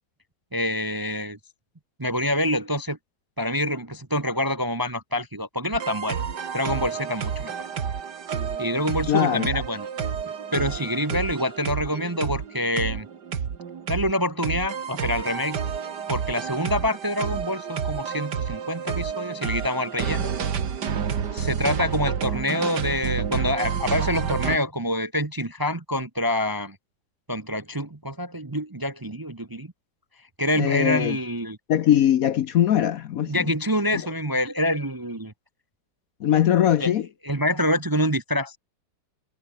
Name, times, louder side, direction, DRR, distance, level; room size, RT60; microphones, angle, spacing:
voice 1, 0.5-1.4 2.0-3.0 3.4-6.2 6.5-7.5 8.6-9.9 10.5-13.1 13.9-15.6 16.1-20.3 21.3-26.8 27.3-29.7 30.4-31.6 33.3-35.3 36.8-36.9 37.2-38.6, left 1 dB, 20° right, 0.7 m, -26 dB
sound 1, 5.7-24.6, right 7 dB, 75° right, 2.3 m, -29 dB
voice 2, 9.1-9.6 30.6-31.2 31.7-33.5 33.9-34.0 36.2-37.1, left 10 dB, 60° left, 1.1 m, -21 dB
omnidirectional pair, 1.9 m